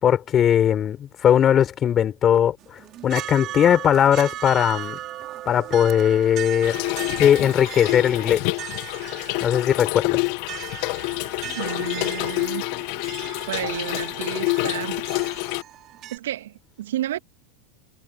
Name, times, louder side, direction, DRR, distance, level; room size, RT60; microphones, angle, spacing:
voice 1, 0.0-2.6 3.0-5.0 5.5-6.8 7.2-8.4 9.4-10.3, left 9 dB, 35° left, 4.6 m, -19 dB
sound 1, 2.6-16.2, right 14 dB, 40° right, 4.3 m, -37 dB
Trickle dribble / Fill (with liquid), 6.6-15.6, left 28 dB, 55° left, 1.5 m, -27 dB
voice 2, 11.6-12.6 13.5-15.0 16.1-17.2, right 13 dB, 70° right, 2.2 m, -31 dB
hypercardioid pair, 95°, 0 cm